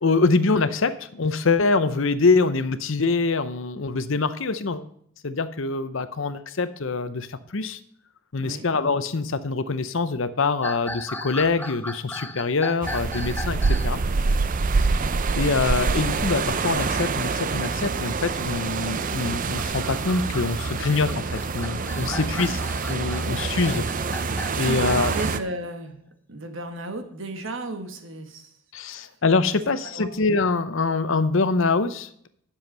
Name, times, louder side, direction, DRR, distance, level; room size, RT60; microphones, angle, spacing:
voice 1, 0.0-4.9 5.2-7.8 8.3-14.0 15.3-22.6 22.9-23.8 24.6-25.1 28.7-32.3, left 3 dB, 60° left, 12 dB, 0.7 m, -24 dB
sound 1, 10.6-13.9 15.4-16.0 16.4-16.5 17.2-17.5 19.2-25.4, left 2 dB, 10° left, 0.6 m, -37 dB
sound 2, 12.8-25.4, right 4 dB, 35° right, 0.5 m, -26 dB
voice 2, 14.6-15.1 22.1-22.3 22.6-22.7 24.5-26.0 26.3-28.6 29.9-30.2, right 2 dB, 60° right, 6 dB, 1.5 m, -34 dB
10.5 x 7.2 x 5.5 m, 0.67 s
head